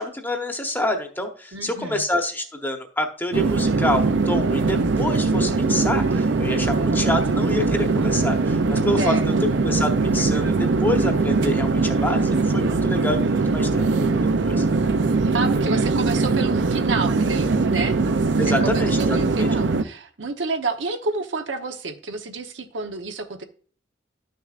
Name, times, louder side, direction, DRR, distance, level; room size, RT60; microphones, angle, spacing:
voice 1, 0.0-9.3 9.6-14.7 18.4-19.5, left 1 dB, 10° left, 4 dB, 1.0 m, -27 dB
voice 2, 1.5-2.0 9.0-9.3 15.3-18.0 18.4-23.4, right 3 dB, 85° right, 6 dB, 1.0 m, -29 dB
sound 1, 3.3-19.8, right 3 dB, 70° right, 0.6 m, -21 dB
11.5 x 6.4 x 2.5 m, 0.44 s
head